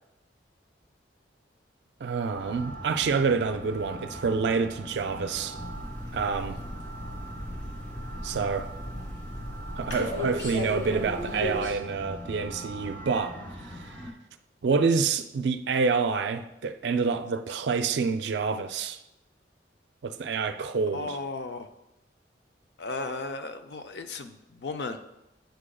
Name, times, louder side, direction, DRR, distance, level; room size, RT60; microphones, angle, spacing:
voice 1, 2.0-5.6 6.1-6.6 8.2-8.7 9.8-13.4 14.6-19.0 20.0-21.2, right 5 dB, 70° right, 0.4 m, -27 dB
sound 1, 2.4-14.1, right 1 dB, 10° left, 0.7 m, -41 dB
sound 2, 5.5-11.7, left 1 dB, 90° left, 2.0 m, -36 dB
voice 2, 20.9-21.7 22.8-25.0, left 3 dB, 65° left, 0.5 m, -35 dB
9.1 x 4.9 x 2.3 m
head